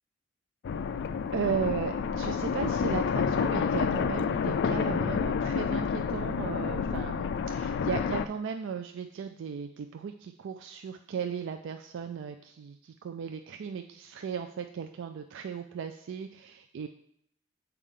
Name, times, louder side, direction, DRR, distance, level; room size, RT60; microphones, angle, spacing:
sound 1, 0.6-8.3, left 6 dB, 55° left, 0.3 m, -29 dB
voice 1, 1.3-16.9, right 7 dB, 60° right, 6 dB, 0.3 m, -36 dB
6.8 x 4.7 x 3.7 m, 0.69 s
head